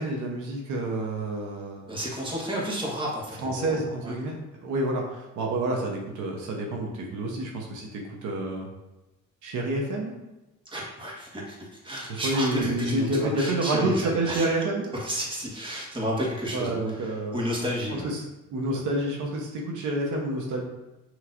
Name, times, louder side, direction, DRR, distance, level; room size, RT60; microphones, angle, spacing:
voice 1, 0.0-2.0 3.4-8.7 9.4-10.1 12.1-14.9 16.5-17.4 18.0-18.2 18.5-20.6, right 2 dB, 80° right, -1 dB, 1.0 m, -28 dB
voice 2, 1.9-4.1 10.7-14.5 15.0-18.1 18.7-18.8, equal, 15° right, -3 dB, 1.5 m, -31 dB
6.2 x 3.1 x 2.6 m, 0.99 s
cardioid pair, 90°, 30 cm